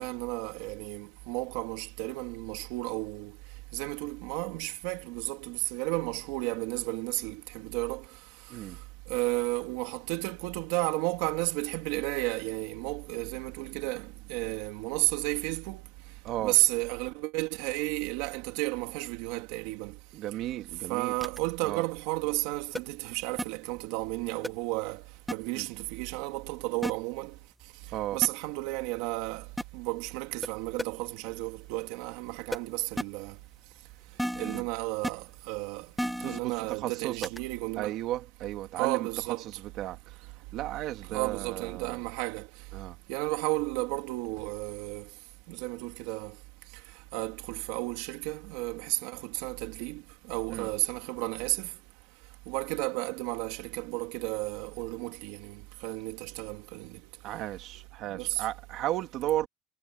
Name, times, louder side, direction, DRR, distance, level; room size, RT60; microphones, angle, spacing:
voice 1, 0.0-3.3 3.7-8.1 9.1-15.8 16.4-19.9 20.9-25.0 25.3-27.3 28.1-29.5 29.7-33.3 34.4-35.9 36.3-37.9 38.8-39.4 41.1-42.5 43.1-45.1 45.5-46.3 47.1-50.0 50.3-51.7 52.5-57.0 58.1-58.4, right 21 dB, 70° right, 2.4 m, -32 dB
voice 2, 8.5-8.8 16.2-16.6 20.1-21.1 21.6-21.9 25.5-25.7 27.9-28.3 34.4-34.7 36.2-37.3 37.8-42.1 42.7-43.0 50.5-50.7 57.2-59.5, right 14 dB, 45° right, 2.0 m, -35 dB
sound 1, 21.2-21.4 22.8-22.9 23.4-23.5 24.4-24.5 25.3-25.4 26.8-26.9 28.2-28.3 29.6-29.7 30.4-30.5 30.8-30.9 32.5-32.6 33.0-33.1 34.2-34.6 35.0-35.1 36.0-36.4 37.2-37.4, equal, ahead, 0.9 m, -31 dB
cardioid pair, 175°, 0 cm